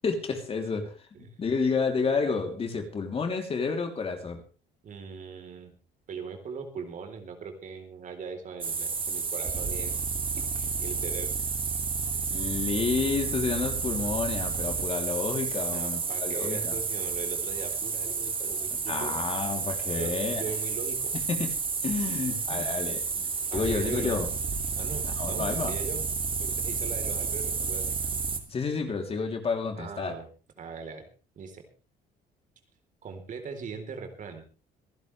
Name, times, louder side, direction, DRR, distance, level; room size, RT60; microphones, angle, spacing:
voice 1, 0.0-4.4 12.3-16.8 18.9-20.5 21.3-21.5 21.8-23.0 23.5-24.3 25.0-25.8 28.5-30.1, left 4 dB, 35° left, 4 dB, 3.2 m, -30 dB
voice 2, 4.8-5.7 6.1-9.9 10.4-11.3 15.7-19.1 20.0-21.1 22.1-22.8 23.1-24.2 24.8-26.1 26.4-28.0 29.8-30.3 30.6-31.0 31.4-31.6 33.0-34.4, right 5 dB, 50° right, 6 dB, 3.9 m, -40 dB
sound 1, 8.6-28.4, right 5 dB, 30° right, 2.5 m, -31 dB
26.5 x 11.0 x 3.3 m, 0.35 s
cardioid pair, 110°, 17 cm